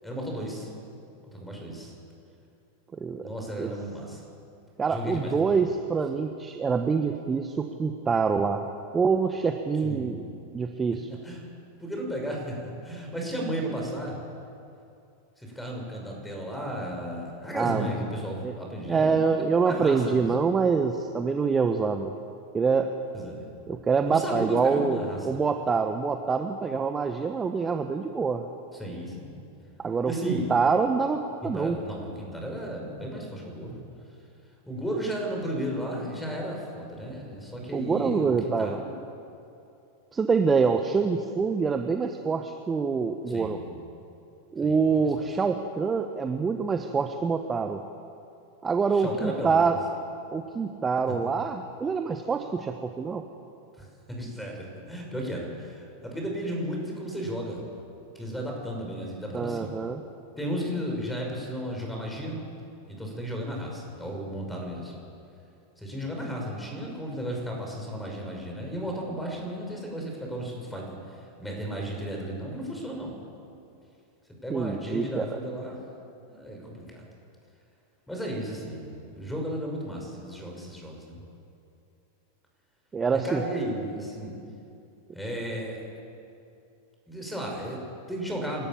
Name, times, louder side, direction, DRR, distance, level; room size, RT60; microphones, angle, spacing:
voice 1, 0.0-0.7 1.3-1.9 3.2-4.2 4.9-5.6 9.8-10.2 11.1-11.4 11.8-14.2 15.4-20.3 23.1-23.5 24.1-25.2 28.7-29.4 30.1-30.5 31.4-33.8 34.7-38.9 43.3-43.7 44.6-45.3 48.9-49.8 53.8-57.6 58.1-59.8 60.4-62.4 62.9-64.9 65.8-73.2 74.4-75.8 76.3-77.0 78.1-81.2 83.1-84.4 85.1-85.9 87.1-88.7, equal, 5° left, 0 dB, 5.9 m, -34 dB
voice 2, 2.9-3.3 3.6-3.7 4.8-8.6 8.9-10.2 10.5-11.1 17.5-17.9 18.4-18.5 18.9-22.1 22.5-22.9 23.7-28.5 29.8-31.8 37.7-38.8 40.1-43.6 44.5-47.8 48.6-49.8 50.3-53.2 59.3-60.0 74.5-75.3 82.9-83.4, right 5 dB, 15° right, 6 dB, 1.0 m, -25 dB
28.0 x 13.0 x 7.3 m, 2.6 s
figure-of-eight pair, 90°, 0 cm